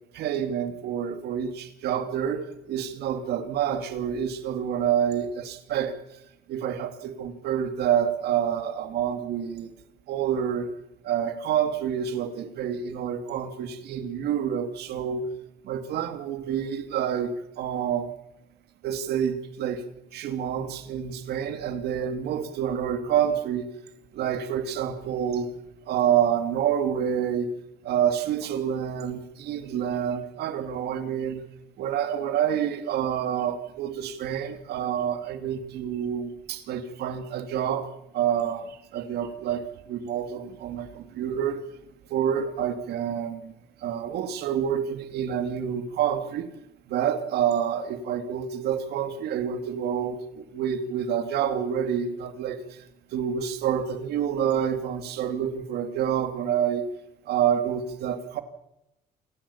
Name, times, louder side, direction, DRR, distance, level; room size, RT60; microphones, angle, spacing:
voice 1, 0.1-5.9 6.5-9.7 10.1-10.7 11.0-15.3 15.6-18.1 18.8-19.8 20.1-23.7 24.1-25.5 25.9-27.5 27.8-31.4 31.8-37.9 38.1-41.6 42.1-43.5 43.8-46.5 46.9-52.6 53.1-56.8 57.3-58.4, right 9 dB, 75° right, 9 dB, 2.6 m, -28 dB
28.0 x 11.5 x 8.8 m, 0.87 s
cardioid pair, 110°, 17 cm